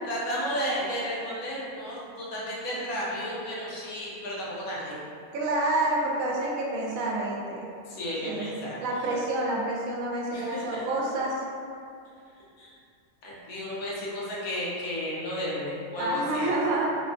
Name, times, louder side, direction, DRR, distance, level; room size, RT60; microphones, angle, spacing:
voice 1, 0.0-5.0 7.9-8.8 10.3-10.8 12.6-12.8 13.2-16.5, equal, 85° left, -6 dB, 1.2 m, -33 dB
voice 2, 5.3-7.7 8.2-11.4 16.0-16.9, right 2 dB, 75° right, -3 dB, 1.0 m, -28 dB
3.6 x 2.2 x 2.5 m, 2.4 s
omnidirectional pair, 1.4 m